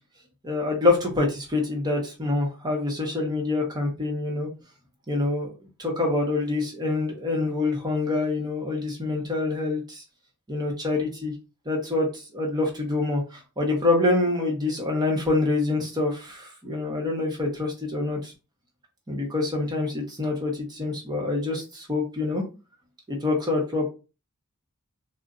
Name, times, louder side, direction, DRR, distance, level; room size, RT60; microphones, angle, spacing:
voice 1, 0.4-4.5 5.1-5.5 5.8-10.0 10.5-11.3 11.7-18.3 19.1-22.4 23.1-23.9, left 2 dB, 20° right, 0 dB, 0.9 m, -26 dB
2.5 x 2.1 x 3.7 m, 0.31 s
head